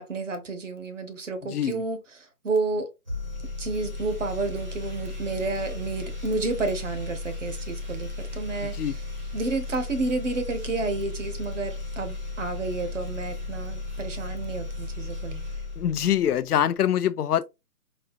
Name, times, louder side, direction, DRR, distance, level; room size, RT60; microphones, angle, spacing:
voice 1, 0.0-2.9 3.6-9.0 9.3-15.4, right 3 dB, 55° right, 1.0 m, -30 dB
voice 2, 1.5-1.8 8.8-8.9 15.8-17.4, left 10 dB, 80° left, 0.5 m, -24 dB
sound 1, 3.1-16.4, left 3 dB, 30° right, 0.8 m, -35 dB
4.1 x 2.6 x 2.7 m
hypercardioid pair, 180°, 45 cm